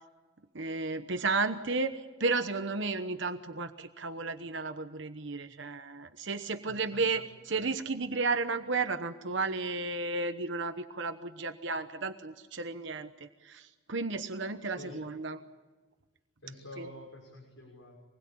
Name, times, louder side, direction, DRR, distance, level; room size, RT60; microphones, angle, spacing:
voice 1, 0.5-15.4 16.8-16.9, right 3 dB, 60° right, 8 dB, 1.1 m, -33 dB
voice 2, 6.7-7.4 14.6-14.9 16.4-18.0, left 1 dB, 70° left, -1 dB, 6.1 m, -48 dB
26.5 x 21.0 x 8.6 m, 1.3 s
head